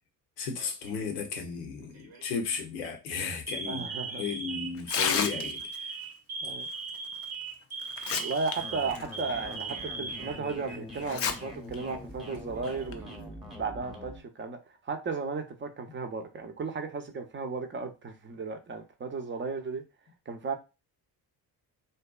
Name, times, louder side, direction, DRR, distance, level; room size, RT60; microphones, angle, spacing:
voice 1, 0.4-6.0, left 5 dB, 90° left, 0.7 m, -35 dB
Alarm, 0.6-1.1 1.9-2.2 2.7-2.9 3.5-11.0 11.3-11.4 12.3-13.0, right 4 dB, 80° right, 0.8 m, -39 dB
voice 2, 3.7-4.2 6.4-6.7 8.1-19.8 20.3-20.5, right 4 dB, 25° right, 0.5 m, -35 dB
Tearing, 4.8-5.8 7.2-7.3 7.8-8.5 8.9-9.0 9.7-9.8 11.0-11.3 11.7-11.8 12.7-12.9, left 7 dB, 35° left, 0.4 m, -30 dB
sound 1, 8.6-14.2, left 1 dB, ahead, 0.9 m, -44 dB
2.6 x 2.2 x 2.3 m
hypercardioid pair, 45°, 47 cm